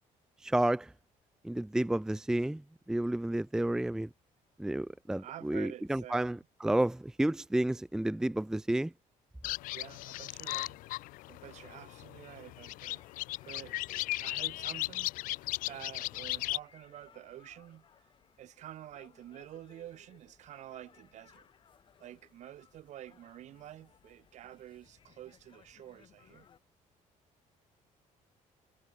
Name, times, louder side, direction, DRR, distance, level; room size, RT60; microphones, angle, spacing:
voice 1, 0.4-0.9 1.4-4.1 4.6-8.9, right 1 dB, 5° right, 0.6 m, -31 dB
voice 2, 5.2-6.4 9.7-10.8 11.3-13.0 13.4-18.1 18.4-21.5 22.0-26.5, right 12 dB, 60° right, 5.0 m, -49 dB
sound 1, 9.4-16.6, left 19 dB, 80° left, 0.4 m, -37 dB
sound 2, 12.8-26.6, left 8 dB, 35° left, 6.4 m, -63 dB
cardioid pair, 170°, 14 cm